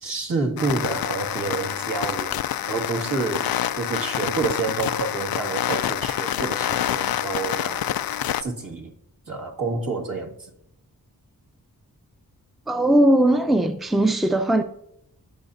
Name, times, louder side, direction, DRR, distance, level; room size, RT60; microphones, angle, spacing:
voice 1, 0.0-8.9 9.3-10.5, right 3 dB, 60° right, 2.1 m, -29 dB
sound 1, 0.6-8.4, left 11 dB, 70° left, 0.5 m, -27 dB
voice 2, 12.7-14.6, right 1 dB, ahead, 0.6 m, -19 dB
16.0 x 5.8 x 2.7 m
cardioid pair, 40°, 37 cm